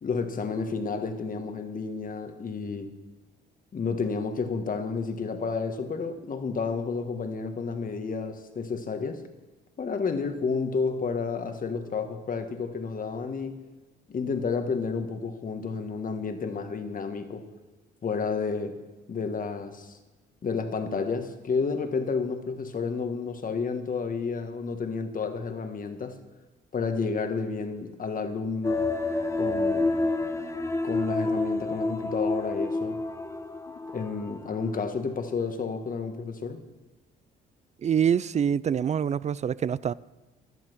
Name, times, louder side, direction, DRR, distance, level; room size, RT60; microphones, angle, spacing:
voice 1, 0.0-2.9 3.7-9.2 9.8-13.6 14.1-17.5 18.0-18.8 19.1-20.0 20.4-26.2 26.7-28.8 29.4-29.9 30.8-33.0 33.9-36.6, left 5 dB, 45° left, 1.5 m, -31 dB
sound 1, 28.6-34.9 35.2-35.3, left 2 dB, 15° left, 1.3 m, -29 dB
voice 2, 37.8-39.9, right 8 dB, 35° right, 0.4 m, -25 dB
11.5 x 11.0 x 6.2 m
cardioid pair, 90°, 20 cm